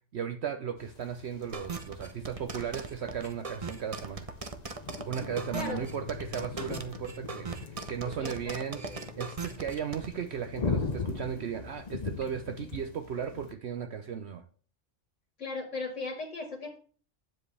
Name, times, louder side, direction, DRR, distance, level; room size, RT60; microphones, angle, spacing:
voice 1, 0.1-4.3 5.0-14.4, right 8 dB, 65° right, 7 dB, 1.0 m, -36 dB
sound 1, 0.8-13.5, left 4 dB, 40° left, 0.9 m, -40 dB
sound 2, 1.5-10.1, right 4 dB, 30° right, 0.9 m, -39 dB
voice 2, 8.2-9.0 15.4-16.8, left 3 dB, 75° left, 1 dB, 2.4 m, -38 dB
9.7 x 7.6 x 3.3 m, 0.41 s
omnidirectional pair, 1.3 m